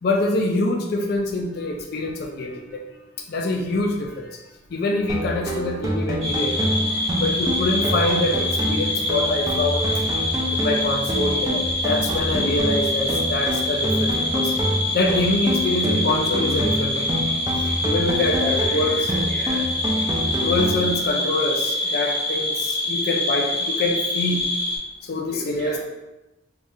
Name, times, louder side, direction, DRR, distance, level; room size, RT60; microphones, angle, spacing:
voice 1, 0.0-2.9 3.3-4.4 4.7-10.0 10.5-14.5 14.9-17.1 17.5-19.1 20.4-24.4 25.0-25.8, left 2 dB, 50° left, 0 dB, 0.4 m, -25 dB
sound 1, 5.1-21.1, equal, 15° right, 0.4 m, -27 dB
sound 2, 6.2-24.8, left 1 dB, 85° right, 1.2 m, -25 dB
voice 2, 18.3-19.7 25.3-25.8, right 1 dB, 40° right, -6 dB, 1.0 m, -36 dB
4.7 x 2.3 x 2.7 m, 1.0 s
head